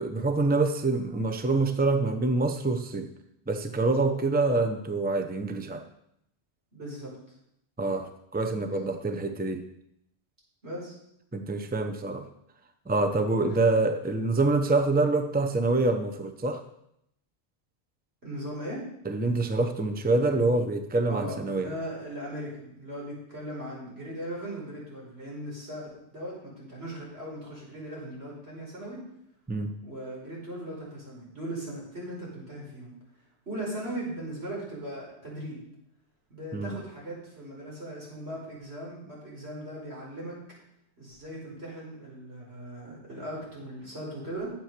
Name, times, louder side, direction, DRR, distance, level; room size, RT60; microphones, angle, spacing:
voice 1, 0.0-3.1 3.5-5.8 7.8-9.6 11.3-12.3 12.9-16.6 19.0-21.7 29.5-29.7 36.5-36.8, right 3 dB, 10° right, 7 dB, 0.8 m, -26 dB
voice 2, 6.7-7.1 8.6-8.9 10.6-11.0 13.5-13.6 18.2-18.8 21.1-29.0 29.8-32.9 33.5-35.6 36.3-40.4 41.0-44.5, right 1 dB, 75° right, -4 dB, 5.2 m, -38 dB
12.5 x 7.7 x 6.7 m, 0.76 s
omnidirectional pair, 1.1 m